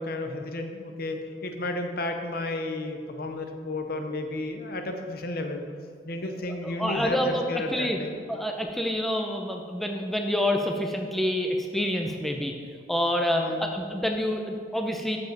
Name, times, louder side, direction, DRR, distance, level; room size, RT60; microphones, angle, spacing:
voice 1, 0.0-5.6 6.0-8.1 13.3-13.7, left 2 dB, 55° left, 5 dB, 0.8 m, -32 dB
voice 2, 6.6-7.4 7.7-8.0 8.3-12.5 12.9-15.2, left 1 dB, ahead, 2 dB, 0.5 m, -27 dB
7.8 x 7.1 x 4.6 m, 2.1 s
head